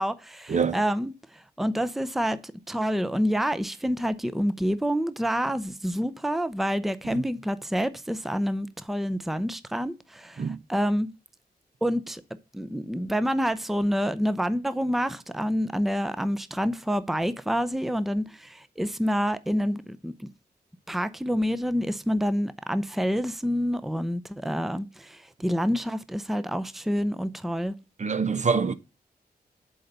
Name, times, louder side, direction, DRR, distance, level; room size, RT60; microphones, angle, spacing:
voice 1, 0.0-11.1 11.8-12.2 12.5-20.3 20.9-27.8, equal, ahead, 0.6 m, -28 dB
voice 2, 28.0-28.7, right 5 dB, 45° right, 0.6 m, -25 dB
7.7 x 4.0 x 6.6 m
cardioid pair, 65°, 17 cm